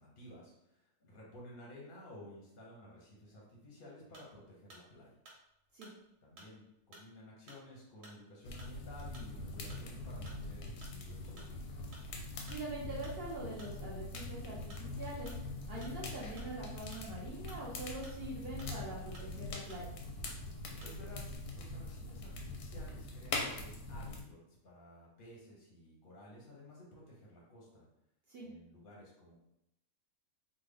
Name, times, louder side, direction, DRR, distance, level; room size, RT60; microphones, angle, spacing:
voice 1, 0.0-5.1 6.2-11.6 20.8-24.4 24.6-27.9 28.4-29.3, left 1 dB, 50° left, -4 dB, 0.7 m, -54 dB
sound 1, 4.1-4.4 4.7-4.9 5.2-6.0 6.4-6.6 6.9-7.1 7.5-7.6 8.0-8.2 8.6-8.8 9.1-9.3 9.7-9.9 10.3-10.5 10.8-11.0 11.4-11.5 11.9-12.1 12.5-12.6 13.0-13.2 13.6-13.8 14.1-14.3 14.7-14.9 15.2-15.4 15.8-16.0 16.4-16.5 16.9-17.6 18.0-18.2 18.6-18.8 19.1-19.4 19.7-19.9 20.2-20.4 20.8-21.0 21.2-21.4, right 2 dB, 85° right, 1.4 m, -56 dB
sound 2, 8.4-24.2, left 2 dB, 85° left, 1.1 m, -43 dB
voice 2, 12.5-15.3 15.7-19.8 28.3-28.5, right 2 dB, 55° right, -5 dB, 0.7 m, -44 dB
3.4 x 2.1 x 3.3 m, 0.83 s
omnidirectional pair, 1.7 m